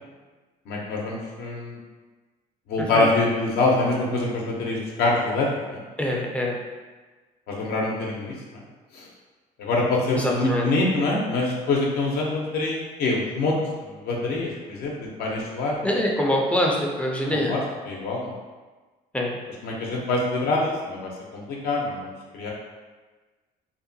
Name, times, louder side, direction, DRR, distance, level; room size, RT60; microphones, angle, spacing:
voice 1, 0.7-1.8 2.7-5.8 7.5-8.6 8.9-9.1 9.6-13.6 14.0-15.9 17.5-18.3 19.6-22.5, left 2 dB, 70° left, -2 dB, 0.5 m, -25 dB
voice 2, 6.0-6.6 10.2-10.7 15.8-17.5 19.1-19.4, left 1 dB, 5° left, -2 dB, 0.4 m, -24 dB
2.7 x 2.1 x 2.6 m, 1.3 s
cardioid pair, 110°, 17 cm